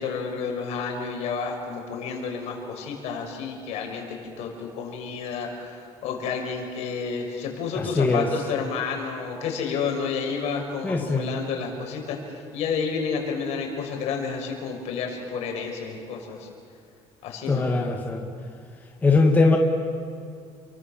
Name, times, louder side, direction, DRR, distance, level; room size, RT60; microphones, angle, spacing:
voice 1, 0.0-4.0 4.4-12.2 12.5-16.5 17.2-17.7, left 5 dB, 65° left, 2 dB, 6.1 m, -30 dB
voice 2, 7.8-8.3 10.8-11.3 17.5-18.2 19.0-19.6, left 3 dB, 15° left, 1 dB, 1.8 m, -21 dB
29.5 x 24.0 x 7.5 m, 2.3 s
cardioid pair, 155°, 12 cm